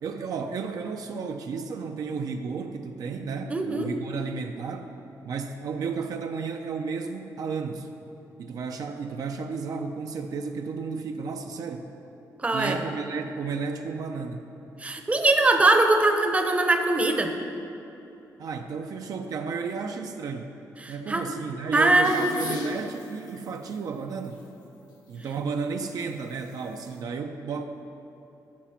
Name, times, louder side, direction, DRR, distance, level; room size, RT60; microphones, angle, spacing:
voice 1, 0.0-4.9 5.2-7.9 8.4-11.9 12.5-14.4 18.4-20.5 20.9-24.4 25.1-27.6, right 5 dB, 65° right, 5 dB, 0.5 m, -33 dB
voice 2, 3.5-3.9 12.4-12.7 14.8-17.3 20.8-21.2 21.7-22.3, right 2 dB, 20° right, 5 dB, 0.7 m, -21 dB
sound 1, 22.0-23.7 24.2-24.4 26.3-26.9, left 4 dB, 75° left, 1.1 m, -38 dB
12.0 x 5.0 x 5.7 m, 2.8 s
cardioid pair, 115°, 7 cm